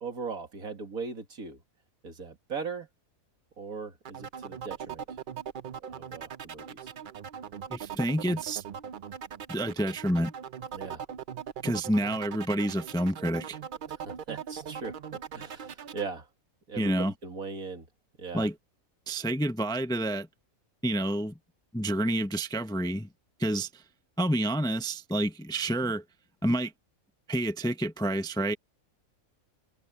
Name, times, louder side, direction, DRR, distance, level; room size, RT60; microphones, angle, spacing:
voice 1, 0.0-1.6 2.0-2.9 3.6-5.0 5.9-6.9 10.7-11.0 13.9-16.3 16.7-17.9 18.2-18.5, right 5 dB, 75° right, 2.6 m, -39 dB
sound 1, 4.0-16.1, right 8 dB, 55° right, 0.6 m, -40 dB
voice 2, 7.7-8.6 9.5-10.3 11.6-13.6 16.8-17.1 18.3-18.5 19.1-20.3 20.8-21.4 21.7-23.1 23.4-23.8 24.2-26.0 26.4-26.7 27.3-28.6, right 1 dB, 5° left, 0.6 m, -28 dB
omnidirectional pair, 1.5 m